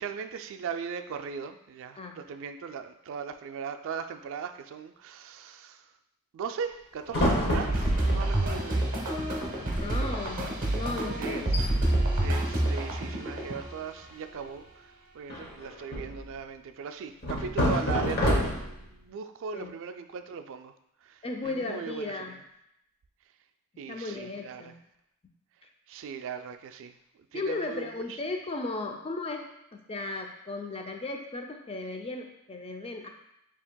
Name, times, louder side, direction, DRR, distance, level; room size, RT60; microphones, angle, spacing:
voice 1, 0.0-5.8 6.3-8.9 11.2-11.5 12.2-20.7 21.0-22.1 23.8-24.6 25.9-27.0 27.3-28.2, right 6 dB, 60° right, 8 dB, 0.3 m, -38 dB
sound 1, 7.1-8.3 9.1-9.2 9.4-9.8 10.1-10.3 10.8-10.9 11.3-11.7 12.7-13.3 15.3-16.3 17.2-18.9, equal, 45° left, 0.9 m, -28 dB
sound 2, 7.7-13.7, right 1 dB, 40° right, 0.8 m, -28 dB
voice 2, 9.8-11.5 19.5-19.7 21.2-22.4 23.9-24.8 27.3-29.4 29.7-33.1, left 2 dB, 25° left, 3 dB, 0.4 m, -35 dB
7.0 x 2.8 x 2.2 m, 0.80 s
head